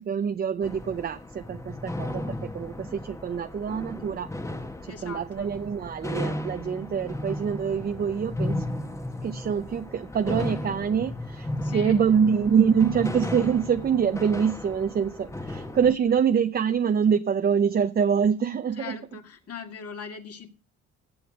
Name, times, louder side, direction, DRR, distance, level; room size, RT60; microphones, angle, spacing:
voice 1, 0.0-4.3 4.8-8.6 9.2-19.0, right 7 dB, 30° right, 0.5 m, -25 dB
sound 1, 0.6-15.9, left 1 dB, 10° left, 1.0 m, -35 dB
voice 2, 4.9-5.5 11.5-12.0 18.8-20.5, left 6 dB, 55° left, 2.1 m, -40 dB
16.0 x 6.9 x 4.7 m
cardioid pair, 90°, 30 cm